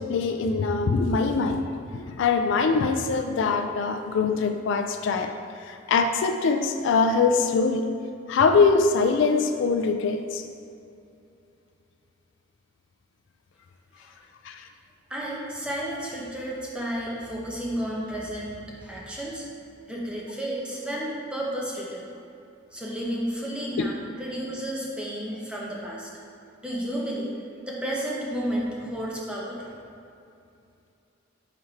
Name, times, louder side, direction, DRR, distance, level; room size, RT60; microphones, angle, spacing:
voice 1, 0.0-1.7 1.9-7.9 8.3-10.4 14.4-14.7 23.8-23.9, left 4 dB, 65° left, 6 dB, 0.3 m, -23 dB
voice 2, 15.1-19.4 19.9-22.1 22.7-26.1 26.6-27.4 27.7-29.8, right 1 dB, 5° right, -5 dB, 0.9 m, -32 dB
4.9 x 4.3 x 4.5 m, 2.6 s
head